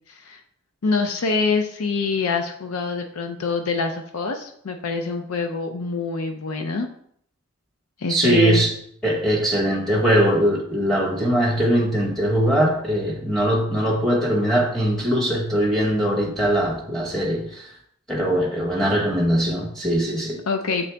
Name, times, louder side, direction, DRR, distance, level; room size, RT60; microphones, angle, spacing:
voice 1, 0.1-0.4 0.8-6.9 8.0-8.6 20.5-20.9, left 4 dB, 85° left, 0.5 m, -25 dB
voice 2, 8.1-8.7 9.0-17.7 18.1-20.4, right 1 dB, ahead, 1.0 m, -21 dB
7.3 x 3.8 x 3.3 m
head